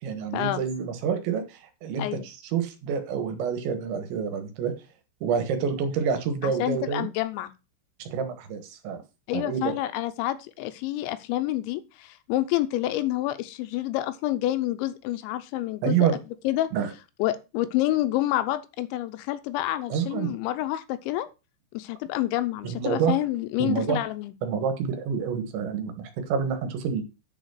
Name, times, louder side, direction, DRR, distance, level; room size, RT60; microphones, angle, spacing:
voice 1, 0.0-4.7 5.2-7.1 8.0-9.0 9.3-9.6 15.8-16.2 16.7-16.9 19.9-20.4 22.6-23.2 23.6-24.0 24.4-27.0, right 7 dB, 70° right, 7 dB, 3.6 m, -28 dB
voice 2, 6.4-7.5 9.3-16.1 16.4-16.7 17.2-21.3 21.7-24.3, left 14 dB, 80° left, 11 dB, 2.8 m, -28 dB
10.0 x 5.0 x 6.3 m, 0.28 s
omnidirectional pair, 5.8 m